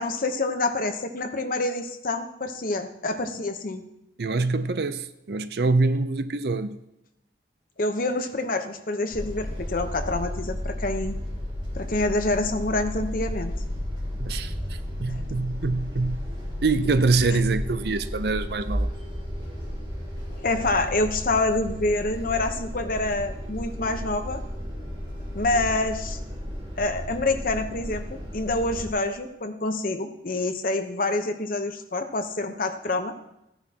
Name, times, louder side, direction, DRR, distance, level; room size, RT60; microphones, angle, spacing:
voice 1, 0.0-3.8 7.8-11.2 11.7-13.5 15.1-15.2 17.3-17.4 20.4-24.4 25.3-26.2 26.8-33.1, left 2 dB, 50° left, 0.9 m, -27 dB
voice 2, 4.2-6.8 14.2-14.5 15.0-16.2 16.6-18.9, right 3 dB, 60° right, 0.6 m, -24 dB
sound 1, 9.1-28.9, equal, 30° right, 4.0 m, -33 dB
14.5 x 10.5 x 2.9 m
head